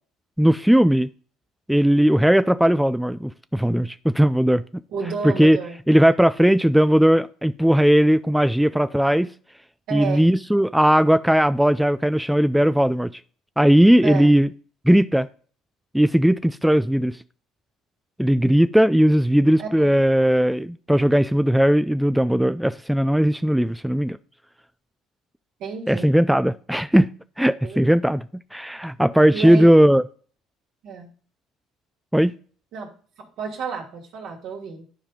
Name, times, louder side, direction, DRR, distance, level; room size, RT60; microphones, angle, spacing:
voice 1, 0.4-1.1 1.7-4.6 5.2-5.6 5.9-9.3 9.9-13.1 13.6-14.5 14.9-15.3 15.9-17.2 18.2-24.2 25.9-27.1 27.4-28.2 28.5-30.0 32.1-32.3, equal, 5° right, 0.4 m, -18 dB
voice 2, 4.9-5.8 9.9-10.3 14.0-14.4 19.6-20.0 25.6-26.1 27.6-28.0 29.3-29.7 30.8-31.1 32.7-32.9 33.2-34.9, right 5 dB, 65° right, 2.6 m, -31 dB
12.0 x 4.9 x 3.7 m
hypercardioid pair, 60°, 0 cm